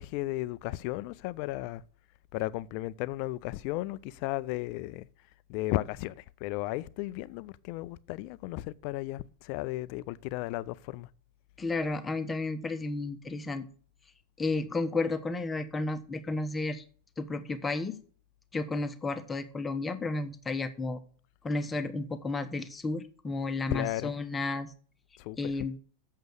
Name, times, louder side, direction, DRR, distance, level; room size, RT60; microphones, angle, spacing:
voice 1, 0.0-1.8 2.3-5.1 5.5-11.1 23.7-24.1 25.2-25.5, left 17 dB, 45° left, 0.5 m, -34 dB
voice 2, 11.6-13.7 14.4-16.8 17.2-18.0 18.5-21.0 21.4-24.7 25.4-25.8, left 3 dB, 15° left, 1.0 m, -32 dB
7.9 x 6.5 x 8.2 m
figure-of-eight pair, 90°, 0 cm